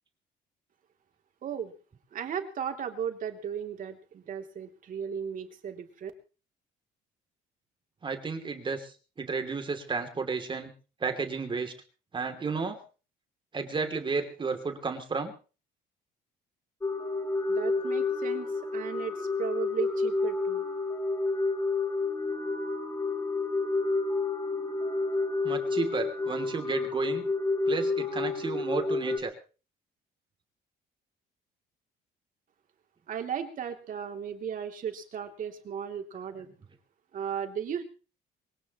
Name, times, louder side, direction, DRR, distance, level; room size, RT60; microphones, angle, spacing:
voice 1, 1.4-1.7 2.1-6.1 17.5-20.6 33.1-36.5 37.1-37.8, right 8 dB, 50° right, 5 dB, 3.0 m, -36 dB
voice 2, 8.0-10.7 11.0-11.7 12.1-12.8 13.5-15.3 25.4-27.3 27.7-29.3, right 4 dB, 30° right, 6 dB, 3.0 m, -32 dB
sound 1, 16.8-29.2, left 3 dB, 15° left, 3.4 m, -30 dB
23.0 x 18.0 x 3.1 m, 0.37 s
cardioid pair, 110°, 17 cm